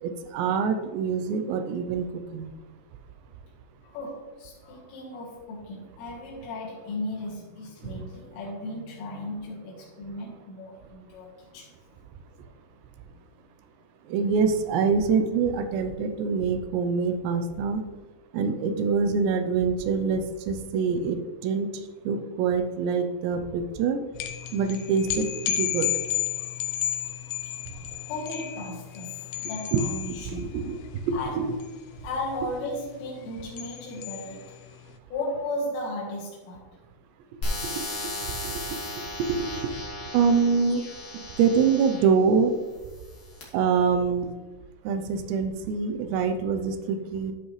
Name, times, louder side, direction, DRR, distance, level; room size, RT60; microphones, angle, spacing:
voice 1, 0.0-2.5 14.1-17.8 18.3-24.0 24.5-25.9 29.7-29.8 30.4-30.8 31.0-31.5 37.6-38.7 39.2-39.8 40.1-40.8 41.1-42.5 43.5-44.3 44.8-47.3, right 5 dB, 80° right, 7 dB, 2.8 m, -25 dB
voice 2, 3.8-11.7 28.0-30.6 31.1-31.5 32.0-34.6 35.1-36.8, left 1 dB, 75° left, -5 dB, 3.7 m, -35 dB
sound 1, 24.1-34.8, left 12 dB, 90° left, 2.2 m, -33 dB
sound 2, 37.4-42.2 42.9-43.4, left 1 dB, 55° left, 1.0 m, -35 dB
12.5 x 5.9 x 3.2 m, 1.2 s
omnidirectional pair, 5.3 m